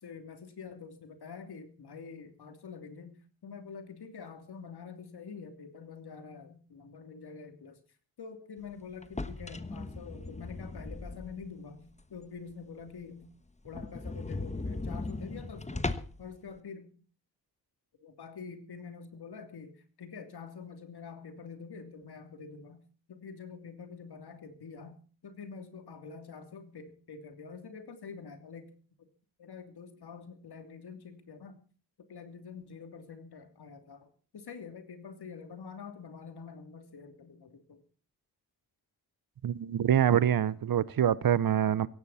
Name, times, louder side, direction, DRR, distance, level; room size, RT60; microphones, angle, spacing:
voice 1, 0.0-3.2 3.4-7.8 8.2-13.3 13.6-15.9 16.2-16.9 18.0-22.8 23.1-29.1 29.4-31.6 32.1-34.1 34.3-37.8, left 5 dB, 60° left, 3.1 m, -46 dB
sound 1, 9.0-11.6 12.0-12.1 12.5-12.6 12.9-13.0 13.2-13.3 13.7-16.3, left 2 dB, 15° left, 1.3 m, -38 dB
voice 2, 39.4-41.9, right 9 dB, 55° right, 0.9 m, -25 dB
16.5 x 16.0 x 4.2 m
supercardioid pair, 55°, 43 cm